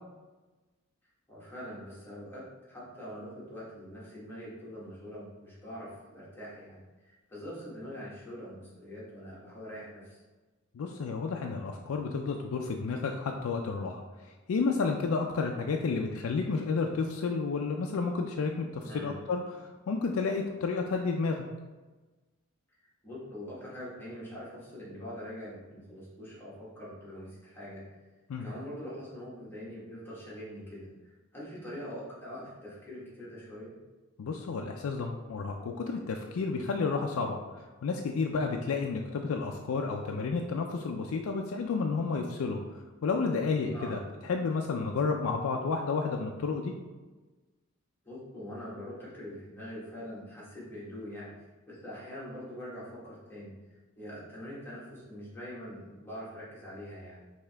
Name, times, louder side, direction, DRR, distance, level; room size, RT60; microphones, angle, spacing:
voice 1, 1.3-2.4 2.7-10.2 18.8-19.1 23.0-27.8 28.4-33.8 43.7-44.0 48.0-51.3 51.7-57.2, equal, 10° left, -7 dB, 1.3 m, -43 dB
voice 2, 10.7-14.0 14.5-21.5 28.3-28.5 34.2-37.4 37.8-46.7, left 4 dB, 80° left, 2 dB, 0.4 m, -31 dB
5.5 x 2.8 x 3.4 m, 1.2 s
head